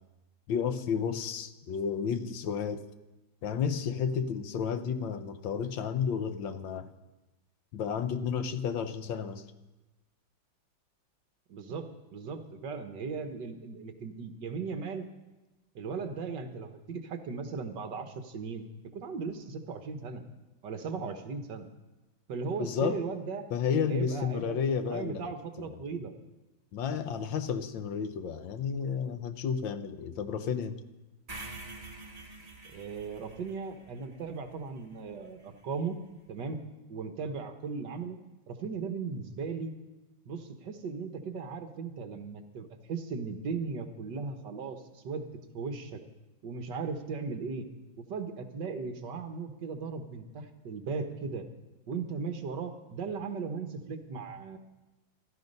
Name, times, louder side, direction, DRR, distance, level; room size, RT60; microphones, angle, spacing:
voice 1, 0.5-2.8 3.4-6.9 7.7-9.4 22.6-23.0 23.5-25.3 25.6-25.7 26.7-30.8, left 7 dB, 75° left, 1.6 m, -32 dB
voice 2, 11.5-15.0 15.7-18.6 18.9-20.2 20.6-21.7 22.3-23.5 23.9-24.5 24.8-26.1 32.7-36.0 36.3-36.6 36.9-38.2 38.5-39.7 40.2-45.2 45.5-46.0 46.4-47.7 48.1-51.4 51.9-54.6, right 5 dB, 65° right, 1.7 m, -37 dB
sound 1, 31.3-35.4, right 2 dB, 20° right, 1.5 m, -47 dB
15.0 x 13.0 x 5.4 m
omnidirectional pair, 2.1 m